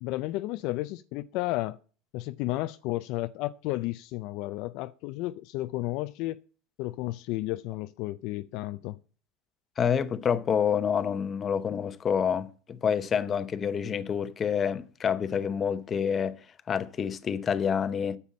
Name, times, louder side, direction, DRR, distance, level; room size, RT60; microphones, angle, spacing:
voice 1, 0.0-1.8 2.1-6.4 6.8-9.0, left 18 dB, 60° left, 0.4 m, -32 dB
voice 2, 9.8-16.4 16.7-18.2, left 7 dB, 30° left, 0.8 m, -28 dB
9.7 x 7.0 x 7.3 m
supercardioid pair, 120°, 0 cm